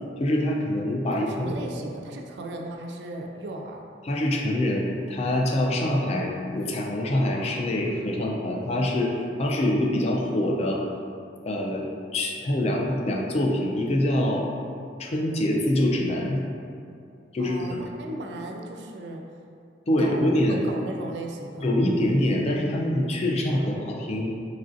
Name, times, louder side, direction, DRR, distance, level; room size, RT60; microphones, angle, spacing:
voice 1, 0.2-1.5 4.1-10.8 11.4-11.9 12.1-14.5 15.0-16.4 17.3-17.8 19.9-20.6 21.6-24.3, left 1 dB, 35° left, -1 dB, 0.3 m, -25 dB
voice 2, 1.1-3.8 17.4-19.2 20.0-21.7, right 2 dB, 70° right, 2 dB, 0.3 m, -36 dB
3.1 x 2.5 x 2.5 m, 2.4 s
head